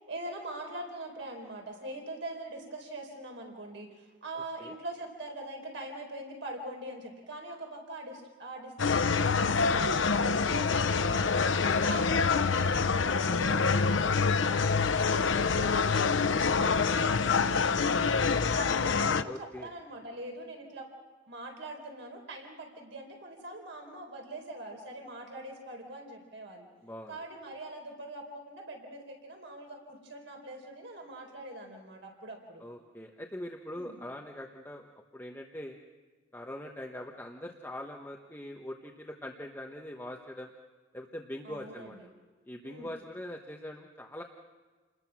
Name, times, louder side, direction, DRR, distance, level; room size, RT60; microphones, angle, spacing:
voice 1, 0.1-11.5 11.8-14.6 14.9-18.2 18.5-20.9 21.3-26.7 27.1-32.6 33.7-34.0 41.4-42.1 42.6-42.9, right 1 dB, 80° right, 2 dB, 4.2 m, -43 dB
voice 2, 4.3-4.7 11.6-12.7 19.2-19.7 26.8-27.1 32.6-34.9 35.1-35.8 36.3-40.5 40.9-42.0 42.4-44.2, left 1 dB, 10° left, 1 dB, 1.1 m, -42 dB
sound 1, 8.8-19.2, left 5 dB, 85° left, 0.7 m, -26 dB
29.0 x 21.0 x 6.2 m, 1.4 s
head